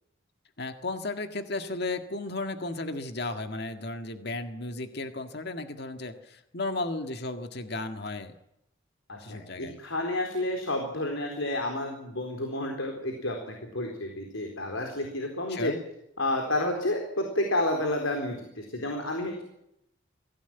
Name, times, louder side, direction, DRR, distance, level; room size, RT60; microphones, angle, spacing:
voice 1, 0.6-8.3 9.2-9.8 15.5-15.8, left 2 dB, 55° left, 7 dB, 1.9 m, -34 dB
voice 2, 9.1-15.7 16.2-19.4, left 1 dB, 80° left, 3 dB, 4.1 m, -30 dB
23.5 x 16.5 x 9.2 m, 0.82 s
head